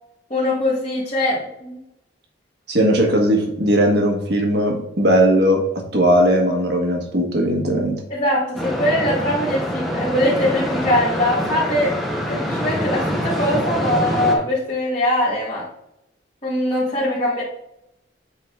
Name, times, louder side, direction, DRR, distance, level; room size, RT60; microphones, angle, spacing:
voice 1, 0.3-1.8 8.1-11.9 12.3-15.7 16.4-17.4, left 1 dB, 35° left, -8 dB, 1.8 m, -22 dB
voice 2, 2.7-5.6 5.9-8.0, equal, 60° right, 1 dB, 1.5 m, -18 dB
sound 1, 8.6-14.4, equal, ahead, 1.1 m, -24 dB
8.3 x 3.9 x 3.6 m, 0.81 s
head